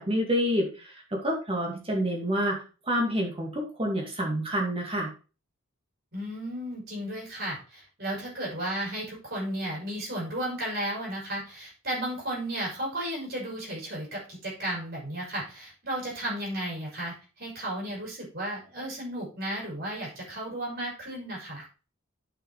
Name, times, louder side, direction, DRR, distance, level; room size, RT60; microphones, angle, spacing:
voice 1, 0.0-2.6 2.9-5.1, equal, 25° right, 0 dB, 2.3 m, -28 dB
voice 2, 6.1-21.7, right 1 dB, 45° right, -4 dB, 5.5 m, -34 dB
8.4 x 5.8 x 4.7 m, 0.35 s
head